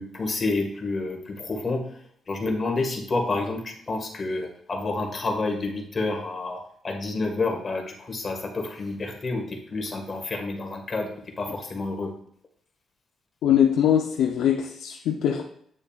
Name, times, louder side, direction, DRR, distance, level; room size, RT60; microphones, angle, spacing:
voice 1, 0.0-1.8 2.3-12.1, left 3 dB, 30° left, 1 dB, 1.7 m, -29 dB
voice 2, 13.4-15.4, left 9 dB, 90° left, 1 dB, 0.7 m, -22 dB
8.8 x 6.6 x 2.4 m, 0.65 s
cardioid pair, 120°, 0 cm